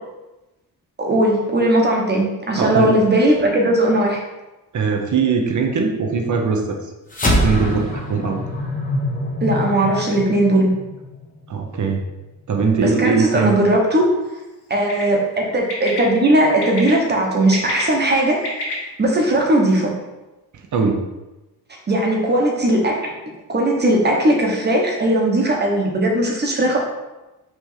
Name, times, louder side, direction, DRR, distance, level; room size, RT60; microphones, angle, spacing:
voice 1, 1.0-4.2 9.4-10.7 12.8-14.1 14.7-18.4 19.0-19.9 21.9-23.0 23.5-26.8, right 1 dB, 25° right, -1 dB, 1.2 m, -18 dB
voice 2, 2.6-2.9 4.7-6.8 7.3-8.4 11.5-12.0 12.5-13.6 20.5-21.0, right 5 dB, 50° right, 3 dB, 0.9 m, -20 dB
sound 1, 7.1-11.7, left 1 dB, 20° left, 1.1 m, -24 dB
Bird, 14.7-15.0 15.7-16.0 16.6-16.9 17.4-18.7, left 2 dB, 90° left, 2.4 m, -28 dB
6.0 x 3.5 x 5.7 m, 1.0 s
wide cardioid pair, 175°, 38 cm